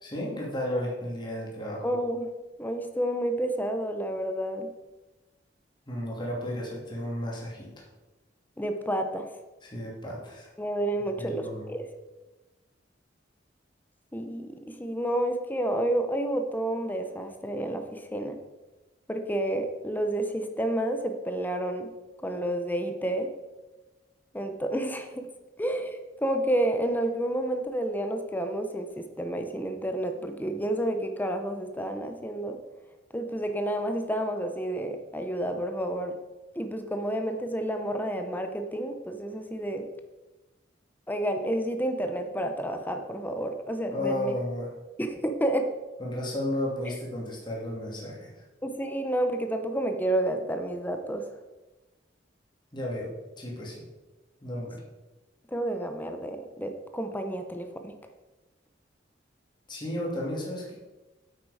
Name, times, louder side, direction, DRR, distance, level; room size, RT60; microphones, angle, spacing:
voice 1, 0.0-1.9 5.9-7.8 9.6-10.5 11.2-11.7 43.9-44.7 46.0-48.4 52.7-53.1 53.4-53.8 54.4-54.8 59.7-60.7, left 1 dB, 25° left, -3 dB, 2.6 m, -33 dB
voice 2, 1.8-2.3 2.6-4.7 8.6-9.3 10.6-11.9 14.1-18.4 19.1-21.9 22.2-23.3 24.3-25.3 25.6-32.6 33.1-36.1 36.6-39.9 41.1-44.3 45.0-45.7 46.8-46.9 48.6-51.2 55.5-57.9, right 1 dB, 10° left, 6 dB, 0.9 m, -30 dB
8.4 x 8.3 x 5.0 m, 1.1 s
head